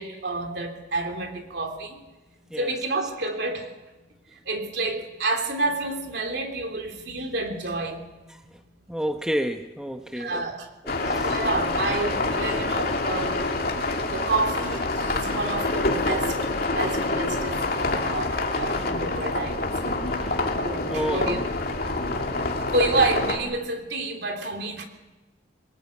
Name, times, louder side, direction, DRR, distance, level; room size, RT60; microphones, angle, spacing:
voice 1, 0.0-2.0 2.6-3.7 4.4-8.0 10.1-10.7 11.1-13.4 14.1-19.9 20.6-21.4 22.7-24.8, right 2 dB, 60° right, 3.1 m, -29 dB
voice 2, 8.9-10.5 10.8-11.4 12.5-13.0 18.6-18.9 19.9-20.5 20.8-21.5 21.8-22.2, equal, 5° right, 0.8 m, -32 dB
sound 1, 10.9-23.4, left 2 dB, 50° left, 2.4 m, -26 dB
23.0 x 19.5 x 8.4 m
head